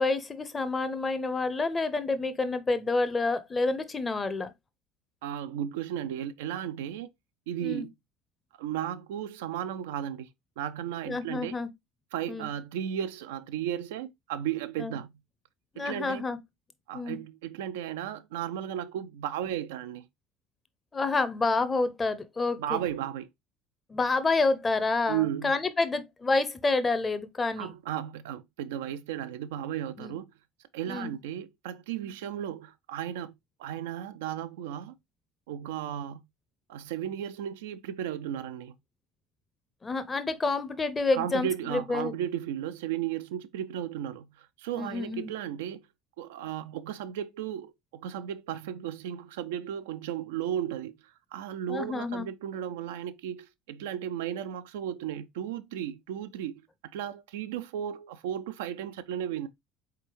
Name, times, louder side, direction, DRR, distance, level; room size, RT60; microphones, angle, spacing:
voice 1, 0.0-4.5 7.6-7.9 11.1-11.7 12.3-12.5 14.8-15.0 15.7-16.4 16.9-17.2 20.9-22.8 23.9-27.7 30.0-30.2 30.9-31.1 39.8-42.1 44.7-45.3 51.7-52.3, left 3 dB, 20° left, 0.7 m, -28 dB
voice 2, 5.2-7.1 7.5-7.9 8.6-10.3 10.6-11.6 12.1-15.1 15.8-16.2 16.9-20.1 22.6-23.3 25.1-25.5 27.6-30.3 30.7-33.3 33.6-35.0 35.5-36.2 36.7-38.7 41.1-45.8 46.2-50.9 51.3-56.6 56.9-59.5, right 10 dB, 65° right, 0.3 m, -34 dB
4.3 x 3.4 x 3.0 m
figure-of-eight pair, 65°, 0 cm